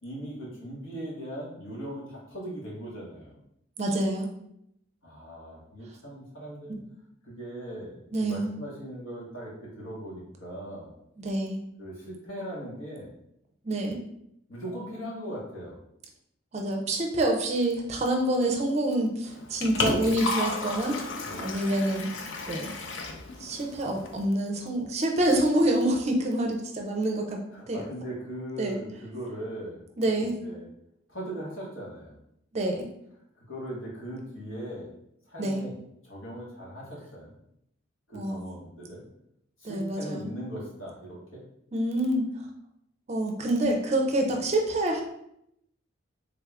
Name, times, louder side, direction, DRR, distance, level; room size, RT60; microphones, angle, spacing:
voice 1, 0.0-3.4 5.0-6.8 7.2-10.9 11.8-13.1 14.5-15.8 21.2-21.6 27.5-29.8 30.2-30.7 31.1-32.2 33.5-34.9 35.3-35.7 36.0-37.3 38.1-39.0 39.6-41.4 44.3-44.4, right 1 dB, 80° left, -5 dB, 1.4 m, -39 dB
voice 2, 3.8-4.3 8.1-8.5 11.2-11.6 13.6-14.0 16.5-21.0 21.4-22.1 22.5-22.7 23.4-27.4 27.7-27.8 28.6-28.8 30.0-30.4 32.5-32.8 35.4-35.6 38.1-38.4 39.6-40.3 41.7-42.3 43.1-45.0, right 1 dB, 30° right, 2 dB, 0.4 m, -27 dB
Liquid, 19.2-24.2, left 3 dB, 65° left, 0.4 m, -33 dB
3.5 x 2.3 x 3.4 m, 0.76 s
head